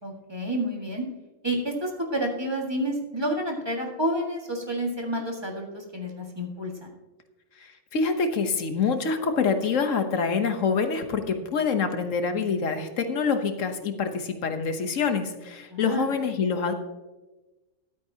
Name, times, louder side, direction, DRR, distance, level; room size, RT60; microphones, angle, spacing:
voice 1, 0.0-1.0 1.4-6.9 15.7-16.1, equal, 20° right, 0 dB, 1.8 m, -29 dB
voice 2, 7.6-16.7, left 5 dB, 80° left, 7 dB, 1.4 m, -26 dB
13.5 x 12.0 x 2.8 m, 1.1 s
omnidirectional pair, 1.3 m